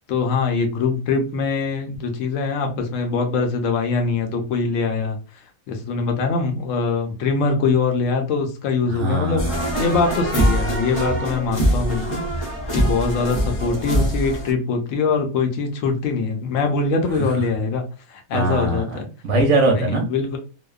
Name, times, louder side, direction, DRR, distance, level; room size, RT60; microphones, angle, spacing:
voice 1, 0.1-5.2 5.7-9.4 9.8-12.2 12.7-17.8 18.1-19.1 19.7-20.4, left 4 dB, 70° left, 4 dB, 0.9 m, -23 dB
voice 2, 8.9-9.8 17.1-17.4 18.3-20.1, right 2 dB, 65° right, 1 dB, 0.9 m, -22 dB
sound 1, 9.4-14.5, equal, 35° left, 0.6 m, -23 dB
2.8 x 2.1 x 2.2 m, 0.35 s
omnidirectional pair, 1.5 m